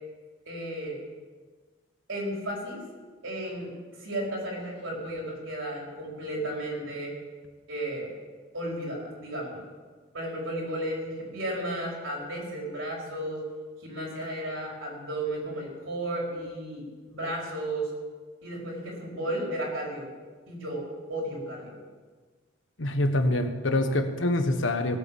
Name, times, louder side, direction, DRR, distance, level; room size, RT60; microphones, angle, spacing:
voice 1, 0.5-1.0 2.1-2.8 3.2-3.7 4.0-7.1 7.7-8.1 8.5-9.6 10.1-13.4 13.8-17.9 18.4-20.1 20.5-20.8 21.1-21.8, right 1 dB, 70° right, -2 dB, 4.7 m, -33 dB
voice 2, 22.8-25.0, left 1 dB, 65° left, 7 dB, 1.3 m, -25 dB
18.0 x 8.4 x 7.2 m, 1.4 s
head